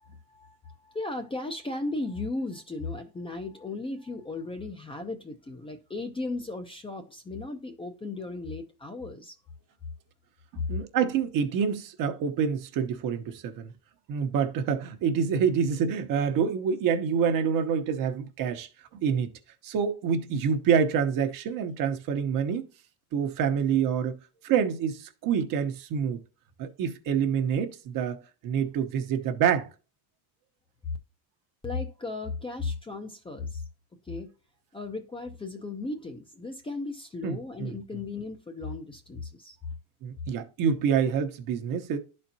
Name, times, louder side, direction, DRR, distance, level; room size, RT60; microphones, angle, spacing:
voice 1, 0.0-9.4 31.6-33.6 34.0-34.3 34.7-39.6, left 3 dB, 10° left, 0.7 m, -36 dB
voice 2, 10.5-13.7 14.1-19.3 19.6-22.7 23.1-26.2 26.6-29.7 37.2-37.7 40.0-42.0, right 7 dB, 45° right, 1.1 m, -27 dB
11.0 x 4.3 x 2.8 m
supercardioid pair, 120°, 44 cm